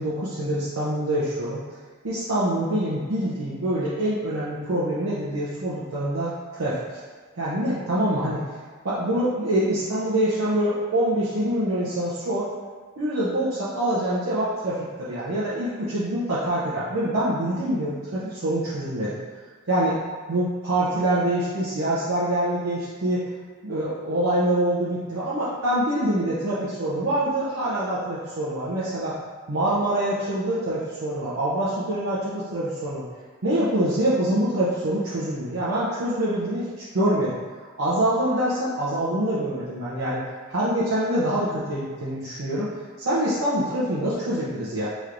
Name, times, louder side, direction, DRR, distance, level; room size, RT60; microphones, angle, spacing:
voice 1, 0.0-1.6 2.0-6.8 7.4-8.4 8.8-12.5 13.0-19.2 19.7-20.0 20.3-23.3 23.6-29.2 29.5-33.0 33.4-37.4 37.8-40.2 40.5-42.7 43.0-44.9, right 1 dB, 70° right, -9 dB, 0.7 m, -25 dB
4.5 x 3.1 x 2.5 m, 1.5 s
head